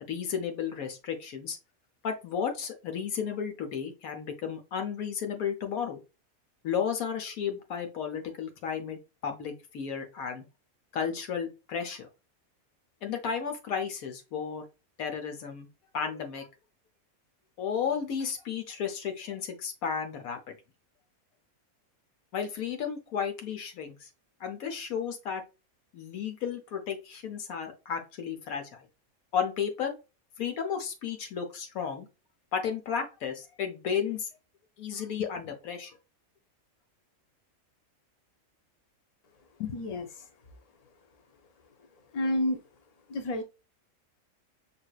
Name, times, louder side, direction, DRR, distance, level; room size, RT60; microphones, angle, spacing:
voice 1, 0.1-1.6 2.0-6.0 6.6-10.4 10.9-12.1 13.0-14.6 15.0-15.7 15.9-16.5 17.6-20.5 22.3-24.1 24.4-25.4 25.9-28.9 29.3-30.0 30.4-32.1 32.5-34.3 34.8-36.0 39.6-39.8, left 7 dB, 80° left, 6 dB, 1.3 m, -33 dB
voice 2, 39.7-40.3 42.1-42.6 43.1-43.4, left 1 dB, 55° left, 6 dB, 0.4 m, -30 dB
5.9 x 2.6 x 2.3 m, 0.29 s
omnidirectional pair, 1.5 m